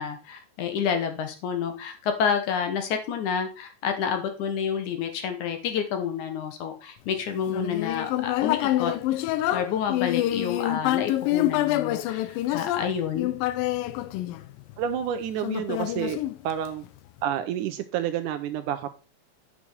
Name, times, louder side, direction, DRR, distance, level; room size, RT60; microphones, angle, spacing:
voice 1, 0.0-8.9 9.5-13.3, left 7 dB, 70° left, 6 dB, 2.3 m, -29 dB
Human voice, 7.5-14.8 15.4-16.9, left 14 dB, 85° left, 2.3 m, -27 dB
voice 2, 14.8-16.2 16.4-16.9 17.2-18.9, right 9 dB, 80° right, 9 dB, 2.0 m, -29 dB
8.7 x 6.0 x 4.2 m, 0.33 s
omnidirectional pair, 3.9 m